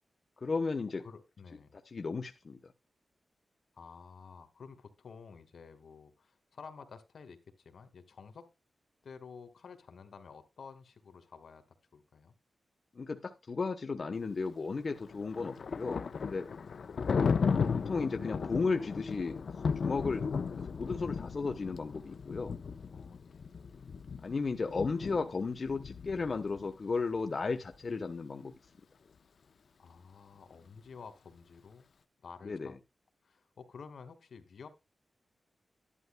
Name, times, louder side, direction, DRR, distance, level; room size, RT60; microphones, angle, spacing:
voice 1, 0.4-1.0 1.9-2.6 12.9-16.5 17.1-17.4 17.9-19.4 19.8-20.2 20.7-22.5 24.2-28.5 32.4-32.7, left 4 dB, 40° left, 6 dB, 1.0 m, -34 dB
voice 2, 1.0-1.8 3.7-8.5 9.0-11.6 11.9-12.3 16.9-17.1 22.9-23.5 29.8-31.9 32.2-32.8 33.2-34.7, left 5 dB, 80° left, 9 dB, 2.0 m, -51 dB
Thunder, 14.9-26.7, left 5 dB, 60° left, 0.7 m, -35 dB
13.0 x 11.0 x 2.2 m, 0.24 s
wide cardioid pair, 170°, 0 cm